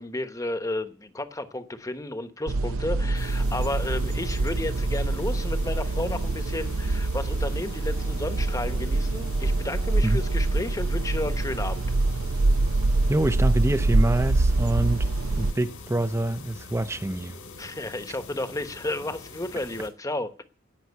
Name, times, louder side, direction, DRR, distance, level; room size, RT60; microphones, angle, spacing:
voice 1, 0.0-11.8 17.6-20.4, left 2 dB, 15° left, 1.0 m, -32 dB
sound 1, 2.5-15.5, right 2 dB, 85° right, 0.7 m, -25 dB
sound 2, 3.1-19.9, left 4 dB, 90° left, 3.9 m, -45 dB
voice 2, 13.1-17.4, right 1 dB, 15° right, 0.6 m, -26 dB
17.5 x 6.2 x 9.5 m
head